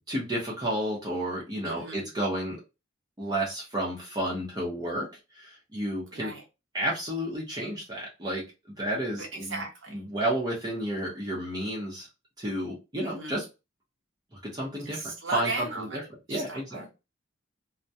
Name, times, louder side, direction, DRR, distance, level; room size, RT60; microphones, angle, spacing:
voice 1, 0.1-2.6 3.2-5.1 5.3-6.3 6.7-8.4 8.8-9.6 9.9-12.1 12.4-13.4 14.3-15.9 16.3-16.9, right 1 dB, 20° right, -4 dB, 0.7 m, -31 dB
voice 2, 1.6-2.1 6.1-6.4 9.2-10.1 13.0-13.4 14.8-16.9, right 3 dB, 65° right, 0 dB, 0.9 m, -37 dB
2.2 x 2.1 x 2.7 m, 0.27 s
head